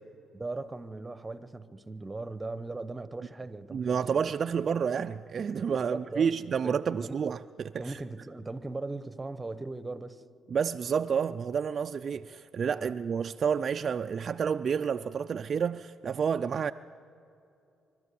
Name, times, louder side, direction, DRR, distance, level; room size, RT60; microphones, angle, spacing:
voice 1, 0.3-4.2 5.7-6.3 6.6-7.2 7.8-10.2 12.8-13.0, right 2 dB, 20° right, 0.9 m, -39 dB
voice 2, 3.7-8.0 10.5-16.7, right 7 dB, 50° right, 0.4 m, -30 dB
25.0 x 12.5 x 8.5 m
cardioid pair, 90°, 0 cm